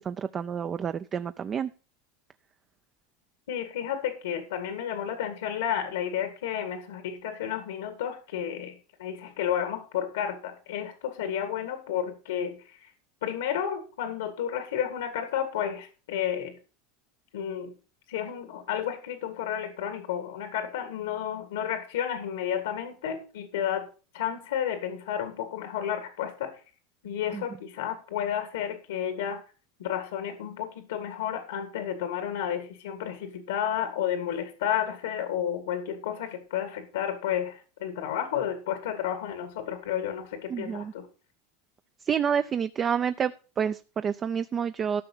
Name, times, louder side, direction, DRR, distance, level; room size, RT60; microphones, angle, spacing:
voice 1, 0.0-1.7 27.3-27.4 40.5-40.9 42.1-45.0, right 7 dB, 25° right, 11 dB, 0.5 m, -29 dB
voice 2, 3.5-12.8 13.2-16.5 17.3-17.7 18.1-23.9 24.1-26.5 27.0-29.4 29.8-41.1, left 9 dB, 90° left, 7 dB, 2.1 m, -31 dB
13.5 x 5.8 x 5.5 m, 0.35 s
supercardioid pair, 125°, 0 cm